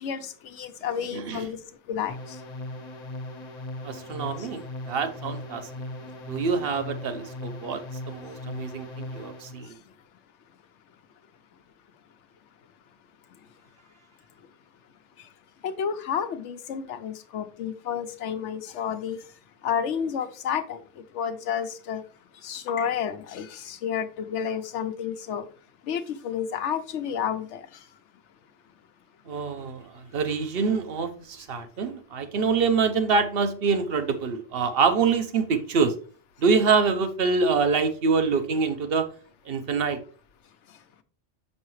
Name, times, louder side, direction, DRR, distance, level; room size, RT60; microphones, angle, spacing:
voice 1, 0.0-1.6 1.9-2.4 4.4-4.5 15.6-19.2 19.6-20.8 21.1-22.0 22.4-25.5 25.9-27.6, left 8 dB, 70° left, 1.0 m, -30 dB
voice 2, 1.1-1.4 3.8-5.9 6.3-9.7 29.3-36.0 36.4-39.1 39.5-40.0, right 5 dB, 55° right, 1.0 m, -25 dB
sound 1, 2.1-9.6, left 1 dB, 40° left, 0.7 m, -38 dB
6.6 x 5.5 x 3.1 m
omnidirectional pair, 1.3 m